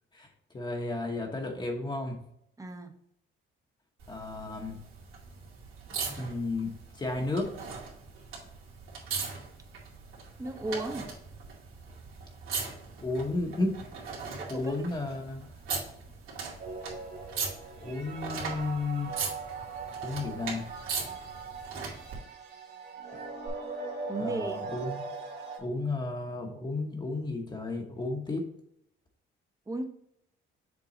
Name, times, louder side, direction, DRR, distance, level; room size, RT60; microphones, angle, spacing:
voice 1, 0.5-2.2 4.1-4.8 6.2-7.5 13.0-13.8 14.5-15.5 17.8-19.1 20.0-20.6 24.2-25.1 25.6-28.4, left 2 dB, 20° left, 1 dB, 1.0 m, -33 dB
voice 2, 2.6-2.9 10.4-11.1 14.4-14.7 24.1-24.6 29.7-29.9, right 2 dB, 15° right, 6 dB, 0.8 m, -35 dB
sound 1, 4.0-22.2 23.5-23.6, right 5 dB, 85° right, 2.3 m, -40 dB
sound 2, 16.6-25.6, right 4 dB, 55° right, 2.2 m, -40 dB
7.1 x 3.8 x 3.9 m, 0.72 s
cardioid pair, 145°, 21 cm